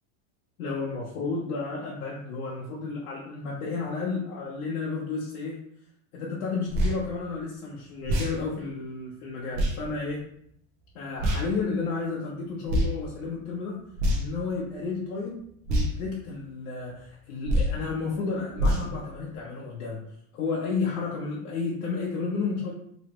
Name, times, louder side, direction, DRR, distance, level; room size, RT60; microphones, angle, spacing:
voice 1, 0.6-5.6 6.1-10.3 10.9-13.8 14.1-20.0 20.3-22.7, left 4 dB, 90° left, -4 dB, 0.8 m, -32 dB
sound 1, 6.7-7.0 8.0-8.3 9.5-9.7 11.2-11.4 12.7-12.9 13.9-14.4 15.7-15.9 17.4-17.8 18.6-18.9, equal, 40° right, 0.8 m, -24 dB
3.2 x 2.9 x 3.0 m, 0.70 s
supercardioid pair, 145°, 43 cm